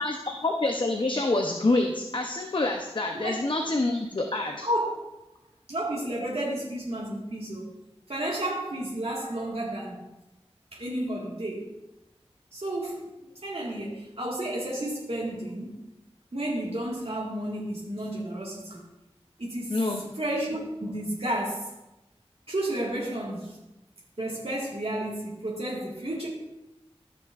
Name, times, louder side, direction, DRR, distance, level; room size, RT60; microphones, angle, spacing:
voice 1, 0.0-4.7 19.7-20.0, left 2 dB, 50° left, 3 dB, 0.7 m, -27 dB
voice 2, 4.6-4.9 5.7-7.7 8.1-10.0 10.7-11.7 12.5-13.0 13.4-15.8 16.3-18.8 19.4-19.7 20.2-21.7 22.5-23.6 24.2-26.3, right 1 dB, 65° right, -5 dB, 1.7 m, -31 dB
13.5 x 6.1 x 2.5 m, 0.97 s
wide cardioid pair, 45°, 11 cm